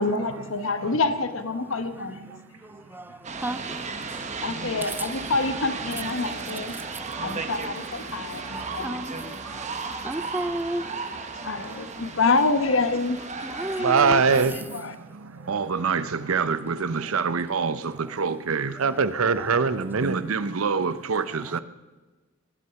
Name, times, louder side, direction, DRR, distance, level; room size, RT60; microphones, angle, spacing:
voice 1, 0.0-2.2 4.4-6.8 7.2-9.3 9.9-10.0 11.4-13.8 14.7-14.9, left 3 dB, 65° left, 1.0 m, -27 dB
voice 2, 2.0-3.8 4.1-4.3 4.8-5.1 6.6-7.5 8.4-12.0 13.4-14.2 19.5-19.6 21.5-21.6, right 1 dB, 10° right, 0.5 m, -35 dB
sound 1, 3.2-14.4, right 4 dB, 35° right, 1.1 m, -35 dB
voice 3, 4.1-4.9 6.4-6.6 7.3-7.5 8.3-8.7 9.4-10.0 11.5-11.8 12.0-12.2 13.8-21.6, right 5 dB, 85° right, 0.7 m, -26 dB
20.0 x 9.8 x 5.8 m
head